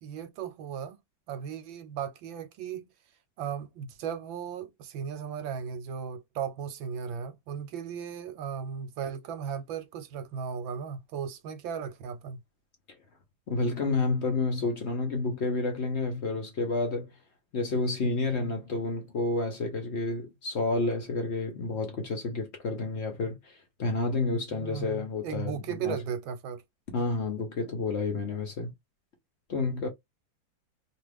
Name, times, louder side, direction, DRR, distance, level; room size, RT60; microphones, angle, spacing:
voice 1, 0.0-1.0 1.3-2.9 3.4-12.4 24.5-26.6, right 7 dB, 75° right, 1.4 m, -36 dB
voice 2, 13.5-17.1 17.5-26.0 26.9-28.7 29.5-29.9, left 3 dB, 60° left, 0.7 m, -30 dB
3.0 x 2.3 x 3.3 m
omnidirectional pair, 2.1 m